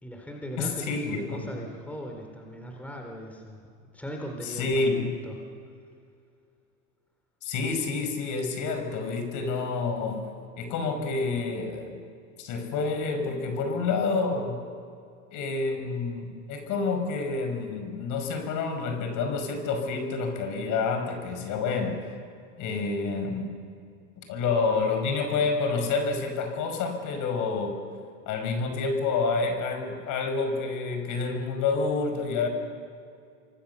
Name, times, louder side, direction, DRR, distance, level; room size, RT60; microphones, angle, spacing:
voice 1, 0.0-3.6 3.9-4.9 5.2-5.4, equal, 5° left, 1 dB, 3.7 m, -39 dB
voice 2, 0.6-1.5 4.5-5.1 7.4-10.3 10.6-12.0 12.4-14.6 15.3-22.0 22.6-23.5 24.3-27.8 28.3-32.5, left 4 dB, 45° left, 6 dB, 5.5 m, -28 dB
27.5 x 23.0 x 6.9 m, 2.3 s
hypercardioid pair, 110°, 41 cm